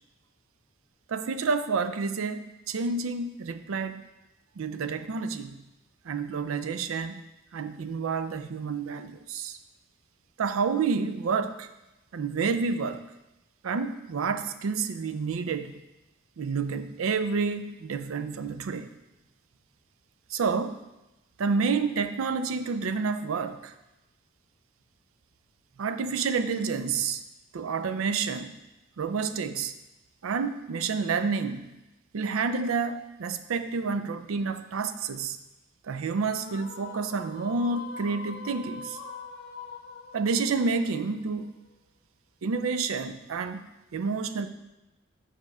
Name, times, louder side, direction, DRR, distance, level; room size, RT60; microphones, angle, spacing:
voice 1, 1.1-4.0 4.6-5.6 6.1-7.2 7.5-9.6 10.4-11.7 12.1-13.0 13.6-15.7 16.4-18.9 20.3-20.8 21.4-23.7 25.8-27.2 27.5-28.5 29.0-29.7 30.2-31.7 32.1-35.4 35.9-39.0 40.1-41.6 42.4-43.6 43.9-44.5, right 5 dB, 75° right, 10 dB, 0.4 m, -29 dB
sound 1, 36.2-41.6, left 3 dB, 50° left, 0.7 m, -43 dB
5.3 x 5.1 x 4.8 m, 0.99 s
head